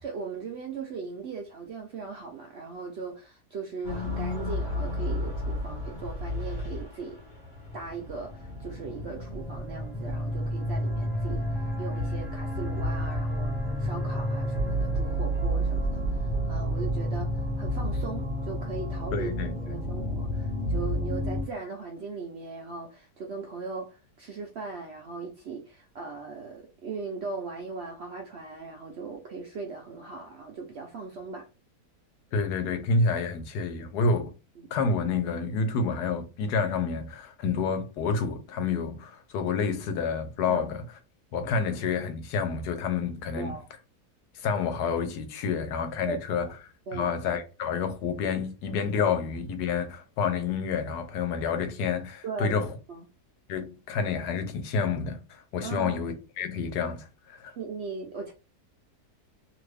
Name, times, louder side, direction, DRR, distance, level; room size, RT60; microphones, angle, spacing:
voice 1, 0.0-7.2 7.7-11.4 11.8-19.3 19.7-31.5 34.6-34.7 40.5-40.6 43.4-43.7 46.0-46.2 46.9-47.2 52.2-52.6 52.9-53.0 55.6-56.0 57.6-58.3, right 4 dB, 65° right, 0.6 m, -38 dB
sound 1, 3.8-21.4, equal, 40° left, 1.0 m, -30 dB
voice 2, 19.1-19.5 32.3-34.3 34.7-40.8 41.3-43.6 44.3-46.5 46.9-52.7 53.5-57.5, left 5 dB, 85° left, 1.3 m, -29 dB
2.8 x 2.5 x 3.2 m
omnidirectional pair, 1.7 m